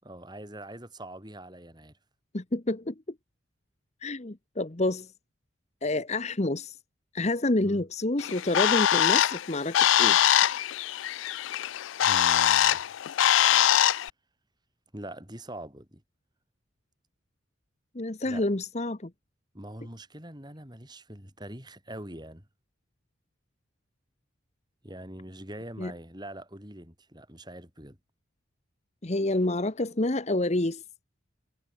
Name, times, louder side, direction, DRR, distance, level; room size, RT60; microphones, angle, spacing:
voice 1, 0.0-1.9 7.6-7.8 12.0-12.8 14.9-16.0 18.2-18.5 19.5-22.5 24.8-28.0, right 1 dB, 20° right, 6.3 m, -43 dB
voice 2, 2.3-2.9 4.0-5.1 5.8-6.7 7.1-10.2 17.9-19.1 25.8-25.9 29.0-30.8, left 2 dB, 35° left, 1.0 m, -28 dB
Bird, 8.2-14.1, left 11 dB, 70° left, 0.4 m, -23 dB
head